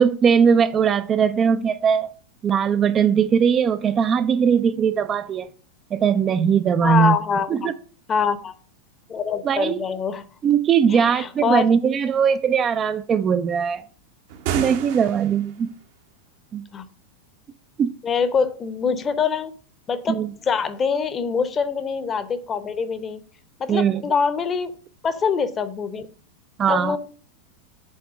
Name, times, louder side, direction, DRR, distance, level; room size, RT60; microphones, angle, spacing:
voice 1, 0.0-2.1 2.4-5.5 5.9-7.2 7.5-7.7 9.4-9.8 10.4-13.8 14.5-15.7 16.5-16.6 17.8-17.9 20.1-20.3 23.7-24.0 26.6-27.0, right 7 dB, 25° right, 0.3 m, -20 dB
voice 2, 6.8-7.7 8.1-8.5 9.1-10.2 10.9-11.7 16.7-16.8 18.0-19.5 19.9-20.2 20.4-23.2 23.6-24.7 25.0-26.1 26.7-27.0, left 6 dB, 20° left, 0.8 m, -24 dB
sound 1, 14.3-15.6, right 8 dB, 50° right, 0.8 m, -29 dB
6.4 x 4.2 x 6.4 m
figure-of-eight pair, 90°, 0 cm